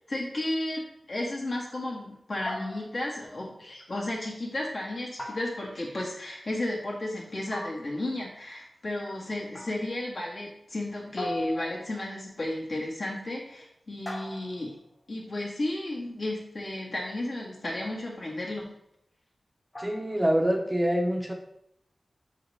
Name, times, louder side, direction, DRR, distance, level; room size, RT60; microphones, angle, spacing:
voice 1, 0.1-0.8 1.1-14.7 15.1-18.7, left 1 dB, 60° left, -3 dB, 1.8 m, -33 dB
sound 1, 2.5-3.2 5.2-6.0 7.5-8.1 9.5-10.0 11.2-12.1 14.1-14.9 17.8-18.2 19.7-20.2, left 1 dB, 30° left, 0.9 m, -40 dB
voice 2, 19.8-21.3, equal, 15° right, 2 dB, 0.7 m, -25 dB
6.3 x 4.7 x 3.3 m, 0.77 s
wide cardioid pair, 75°, 0 cm